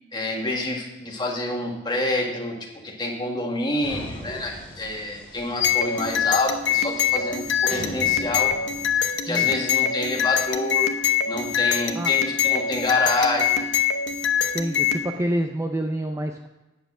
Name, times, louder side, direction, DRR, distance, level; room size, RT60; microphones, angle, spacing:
voice 1, 0.1-2.6 2.8-8.5 9.3-10.9 11.3-13.7, left 2 dB, 25° left, 0 dB, 1.8 m, -27 dB
sound 1, 3.8-9.1, equal, 5° left, 2.6 m, -40 dB
sound 2, 5.6-15.0, left 8 dB, 65° left, 0.8 m, -24 dB
voice 2, 9.3-9.6 11.9-12.1 14.5-16.5, right 1 dB, 15° right, 5 dB, 0.5 m, -27 dB
9.1 x 7.5 x 6.0 m, 1.1 s
head